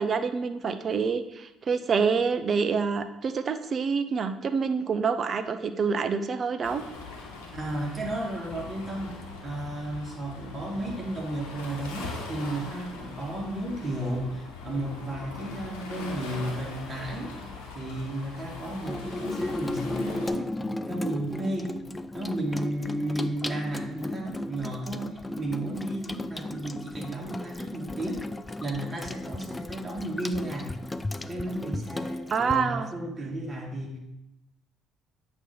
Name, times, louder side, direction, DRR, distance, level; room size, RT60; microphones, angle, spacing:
voice 1, 0.0-6.8 32.3-32.9, right 5 dB, 45° right, 10 dB, 0.5 m, -27 dB
Waves surf, 6.6-20.3, left 3 dB, 75° left, 1.0 m, -41 dB
voice 2, 7.5-17.4 17.7-20.5 20.9-21.8 22.1-30.8 31.3-34.0, right 1 dB, 25° right, -2 dB, 2.0 m, -33 dB
Water tap faucet / Sink (filling or washing), 18.8-32.6, left 2 dB, 15° left, 0.3 m, -35 dB
8.1 x 2.9 x 5.5 m, 0.89 s
figure-of-eight pair, 50°, 0 cm